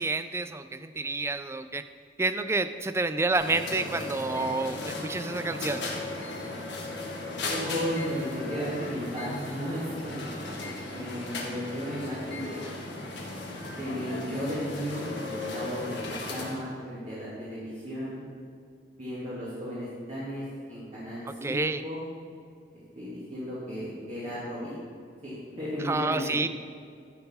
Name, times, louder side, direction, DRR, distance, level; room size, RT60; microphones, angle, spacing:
voice 1, 0.0-1.8 2.2-5.8 21.3-21.8 25.8-26.5, right 3 dB, 15° right, 11 dB, 0.3 m, -29 dB
sound 1, 3.3-16.6, left 2 dB, 85° left, 1.5 m, -36 dB
voice 2, 7.4-12.7 13.8-18.2 19.0-22.0 23.0-24.8 25.2-26.2, equal, 40° right, -10 dB, 2.1 m, -35 dB
12.0 x 4.6 x 5.5 m, 2.2 s
head